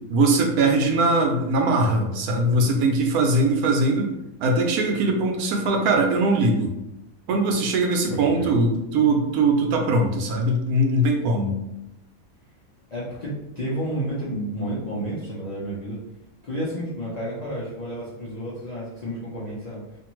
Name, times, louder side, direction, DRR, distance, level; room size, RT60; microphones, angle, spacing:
voice 1, 0.1-4.1 4.4-6.7 7.3-11.6, right 2 dB, 85° right, 2 dB, 1.1 m, -21 dB
voice 2, 8.1-8.5 12.9-16.0 16.4-19.8, right 1 dB, 45° left, -9 dB, 0.5 m, -31 dB
2.6 x 2.5 x 2.9 m, 0.91 s
omnidirectional pair, 1.5 m